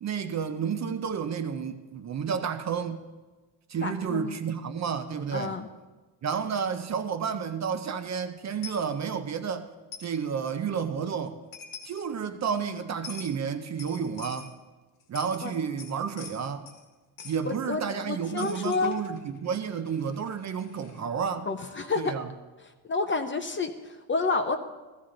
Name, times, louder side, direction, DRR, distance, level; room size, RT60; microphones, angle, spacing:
voice 1, 0.0-3.0 3.7-5.5 6.2-9.7 10.0-11.4 11.8-14.5 15.1-16.7 17.2-21.5 22.0-22.3, right 7 dB, 35° right, 0.6 m, -31 dB
voice 2, 3.8-4.3 5.3-5.7 15.4-15.5 17.5-19.0 21.5-22.1 22.9-24.6, left 4 dB, 25° left, 0.6 m, -29 dB
Coin (dropping), 8.6-8.9 9.9-10.2 11.3-11.4 11.5-12.1 13.0-13.4 13.8-14.5 15.0-16.8 17.2-17.4 18.4-21.0, left 6 dB, 85° left, 1.9 m, -45 dB
16.0 x 14.0 x 3.8 m
cardioid pair, 175°, 50 cm